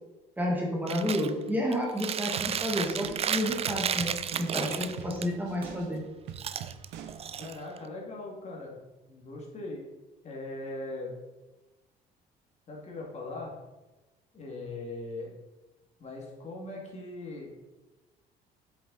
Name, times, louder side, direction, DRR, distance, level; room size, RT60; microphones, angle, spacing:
voice 1, 0.4-4.1 4.4-6.0, equal, 10° right, -2 dB, 1.8 m, -30 dB
Chewing mastication, 0.9-1.3 1.7-5.3 6.3-7.9, right 8 dB, 35° right, 0.5 m, -33 dB
sound 1, 2.4-7.6, right 9 dB, 85° right, 0.8 m, -44 dB
voice 2, 7.4-8.8 9.1-9.8 10.2-11.1 12.7-13.5 14.3-15.3 16.0-17.5, left 2 dB, 40° left, -2 dB, 2.6 m, -40 dB
8.1 x 7.0 x 4.2 m, 1.1 s
cardioid pair, 110°, 17 cm